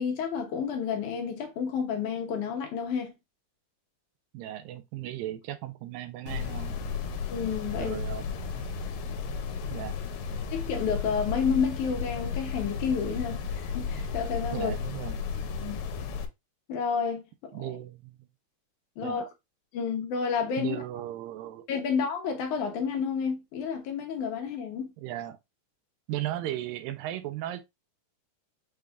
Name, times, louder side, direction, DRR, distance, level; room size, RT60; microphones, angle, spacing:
voice 1, 0.0-3.1 7.3-8.0 10.5-14.7 15.6-15.8 16.7-17.5 19.0-19.2 19.7-20.8 21.7-24.9, left 6 dB, 75° left, 2.0 m, -30 dB
voice 2, 4.3-6.7 7.8-8.2 9.7-10.0 14.5-15.2 17.5-18.3 19.0-19.2 20.6-21.7 25.0-25.4 26.1-27.6, right 13 dB, 85° right, 2.3 m, -36 dB
sound 1, 6.3-16.3, left 6 dB, 90° left, 2.4 m, -34 dB
6.2 x 2.4 x 3.3 m
omnidirectional pair, 4.0 m